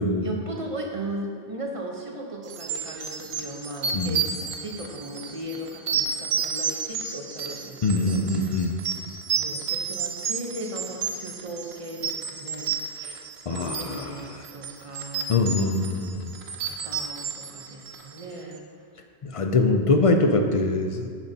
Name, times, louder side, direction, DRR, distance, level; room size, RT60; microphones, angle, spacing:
voice 1, 0.1-9.0 9.4-15.8 16.6-18.6 19.0-19.1, right 1 dB, 35° right, 0 dB, 0.9 m, -37 dB
sound 1, 2.5-18.3, right 6 dB, 80° right, 0.9 m, -31 dB
voice 2, 7.8-8.8 13.0-13.1 13.5-14.3 15.3-16.3 19.2-21.1, left 2 dB, 50° left, 5 dB, 0.4 m, -23 dB
9.7 x 7.2 x 2.8 m, 2.2 s
omnidirectional pair, 1.1 m